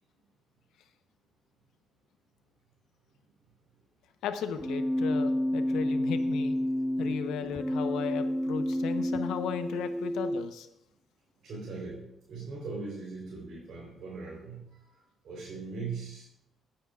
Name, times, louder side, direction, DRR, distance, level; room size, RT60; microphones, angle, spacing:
voice 1, 4.2-6.5 7.0-10.7, left 8 dB, 85° left, 8 dB, 0.9 m, -35 dB
Keyboard (musical), 4.6-10.6, equal, ahead, 0.3 m, -30 dB
voice 2, 11.4-16.3, right 4 dB, 65° right, -6 dB, 4.0 m, -40 dB
18.0 x 8.8 x 2.5 m, 0.78 s
cardioid pair, 90°, 0 cm